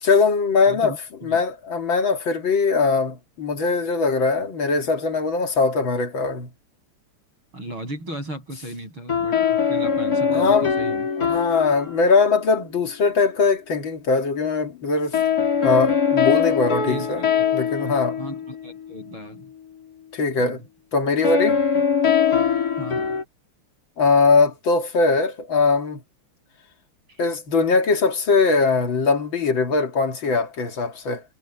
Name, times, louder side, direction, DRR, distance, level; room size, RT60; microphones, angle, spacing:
voice 1, 0.0-0.9 1.2-6.5 10.3-10.7 11.2-15.2 15.6-17.2 17.5-18.2 20.1-20.6 20.9-21.6 24.0-26.0 27.2-31.2, left 4 dB, 65° left, 3.1 m, -21 dB
voice 2, 0.7-1.0 1.2-1.4 7.5-11.1 16.8-17.5 18.2-19.5 20.4-20.6 22.8-23.2 27.1-27.2, right 1 dB, 70° right, 9.0 m, -36 dB
sound 1, 9.1-12.5 15.1-19.0 21.2-23.2, left 7 dB, 45° left, 3.2 m, -22 dB
omnidirectional pair, 2.3 m